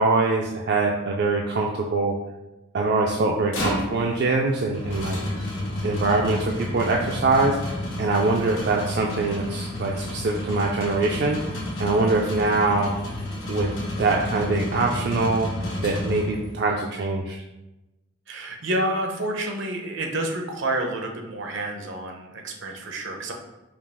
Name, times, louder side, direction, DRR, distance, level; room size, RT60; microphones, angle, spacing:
voice 1, 0.0-2.2 2.7-5.2 5.8-12.9 13.5-13.7 14.0-15.5 15.8-17.4, right 3 dB, 55° right, 0 dB, 0.3 m, -23 dB
sound 1, 3.3-16.7, left 1 dB, 90° left, 1.1 m, -31 dB
voice 2, 18.3-23.3, right 1 dB, 75° right, 2 dB, 0.7 m, -29 dB
5.0 x 2.4 x 3.4 m, 1.0 s
head